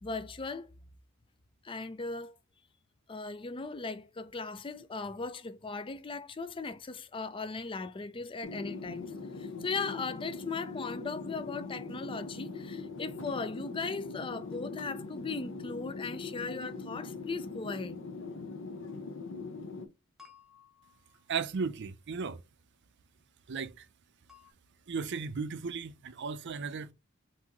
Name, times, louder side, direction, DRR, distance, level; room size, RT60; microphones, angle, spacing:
voice 1, 0.0-0.7 1.6-2.4 3.1-18.0, left 4 dB, 25° left, 0.4 m, -38 dB
sound 1, 8.4-19.9, left 3 dB, 60° left, 0.7 m, -41 dB
sound 2, 20.2-21.7 24.3-24.5, left 7 dB, ahead, 1.0 m, -59 dB
voice 2, 21.3-22.4 23.5-23.9 24.9-26.9, right 5 dB, 55° right, 0.5 m, -35 dB
5.9 x 2.7 x 2.9 m
head